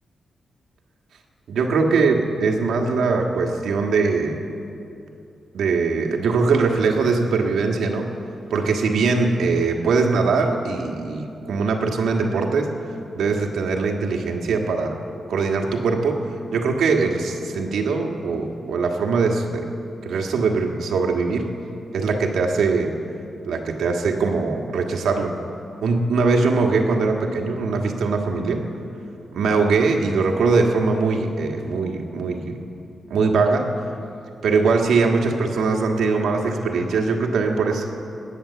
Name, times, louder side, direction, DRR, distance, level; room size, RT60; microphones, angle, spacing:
voice 1, 1.5-4.4 5.5-8.1 8.5-12.7 13.1-15.0 15.3-16.2 16.5-19.7 20.0-21.5 21.9-22.9 23.4-25.3 25.8-28.6 29.3-32.6 33.1-33.7 34.4-37.9, right 4 dB, 90° right, 2 dB, 1.5 m, -21 dB
20.0 x 8.7 x 7.0 m, 2.7 s
wide cardioid pair, 155°, 0 cm